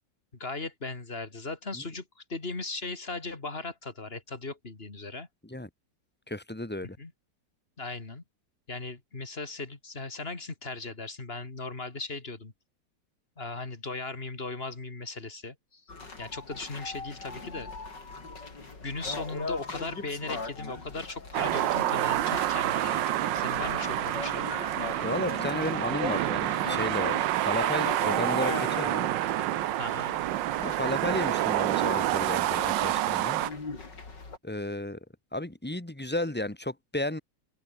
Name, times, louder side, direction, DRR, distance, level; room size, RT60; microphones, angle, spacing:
voice 1, 0.4-5.3 7.0-7.1 7.8-8.2 8.7-12.5 13.4-15.8 16.2-17.7 18.8-24.5 29.8-30.2, left 3 dB, 30° left, 3.0 m, -38 dB
voice 2, 6.3-7.0 25.0-29.1 30.6-33.4 34.4-35.0 35.3-37.2, left 1 dB, 5° left, 1.8 m, -33 dB
sound 1, 15.9-34.4, left 3 dB, 75° left, 4.9 m, -40 dB
sound 2, 21.3-33.5, right 15 dB, 85° right, 1.4 m, -28 dB
omnidirectional pair, 1.9 m